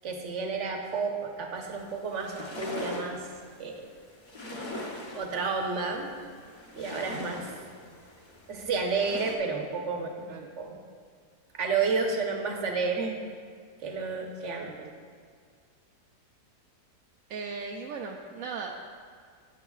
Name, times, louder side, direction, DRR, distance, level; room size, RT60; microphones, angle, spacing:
voice 1, 0.0-3.3 3.6-3.9 5.1-6.1 6.7-7.5 8.5-10.8 11.5-13.2 13.8-14.9, right 4 dB, 50° right, 2 dB, 1.2 m, -31 dB
sound 1, 1.6-9.4, left 1 dB, 35° left, 0.9 m, -41 dB
voice 2, 14.4-15.0 17.3-18.8, right 4 dB, 65° right, 1 dB, 0.8 m, -38 dB
17.0 x 6.7 x 2.4 m, 2.1 s
omnidirectional pair, 1.8 m